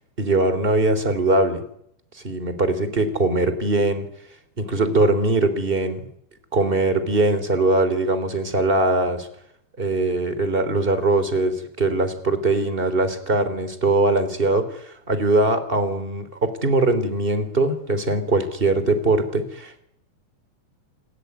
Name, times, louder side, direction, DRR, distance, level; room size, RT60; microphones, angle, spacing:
voice 1, 0.2-1.6 2.1-4.1 4.6-6.1 6.5-9.3 9.8-19.8, right 2 dB, 15° right, 11 dB, 3.0 m, -21 dB
28.0 x 17.5 x 9.6 m, 0.72 s
omnidirectional pair, 5.1 m